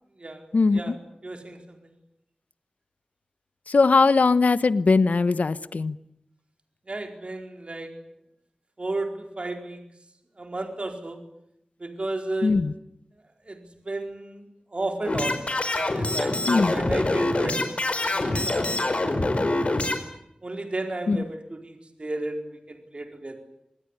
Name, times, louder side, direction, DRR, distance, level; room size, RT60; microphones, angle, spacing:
voice 1, 0.5-0.9 3.7-6.0 12.4-12.7 16.5-16.7 21.1-21.2, left 4 dB, 80° left, 15 dB, 1.0 m, -20 dB
voice 2, 1.2-1.9 6.9-7.9 8.8-9.8 10.4-11.2 11.8-12.5 13.4-15.4 15.7-19.9 20.4-23.4, right 2 dB, 45° right, 4 dB, 4.5 m, -33 dB
sound 1, 15.0-20.0, left 2 dB, 55° left, 5.0 m, -25 dB
27.0 x 20.5 x 9.9 m, 0.81 s
wide cardioid pair, 65°, 3 cm